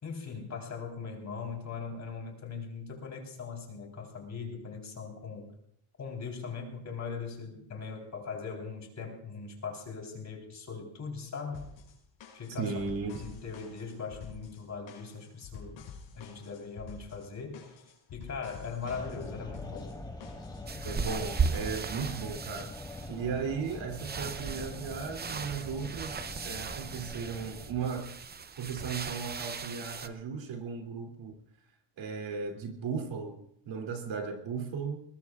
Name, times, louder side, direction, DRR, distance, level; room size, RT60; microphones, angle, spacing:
voice 1, 0.0-5.5 6.0-11.8 12.3-17.7 18.1-20.0, left 5 dB, 35° left, 2 dB, 3.9 m, -40 dB
sound 1, 11.5-22.2, left 6 dB, 75° left, 5.8 m, -49 dB
voice 2, 12.6-13.2 20.8-22.7 23.1-28.1 28.6-31.4 32.0-35.0, right 5 dB, 70° right, 3 dB, 3.0 m, -36 dB
sound 2, 18.8-28.0, left 2 dB, 10° left, 1.4 m, -44 dB
sound 3, 20.7-30.1, right 5 dB, 20° right, 0.6 m, -37 dB
22.0 x 20.5 x 2.4 m, 0.69 s
cardioid pair, 145°, 46 cm